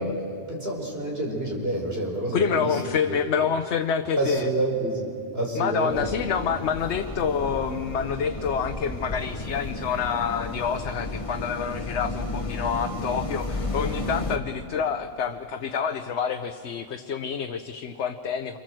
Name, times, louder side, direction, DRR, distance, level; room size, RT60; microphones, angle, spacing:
voice 1, 0.0-3.2 4.2-6.3, right 2 dB, 55° right, -1 dB, 5.0 m, -28 dB
voice 2, 2.3-4.5 5.6-18.6, left 7 dB, 70° left, 7 dB, 1.1 m, -27 dB
sound 1, 5.9-14.4, left 2 dB, 30° left, 1.5 m, -33 dB
29.0 x 25.0 x 7.7 m, 2.4 s
omnidirectional pair, 1.2 m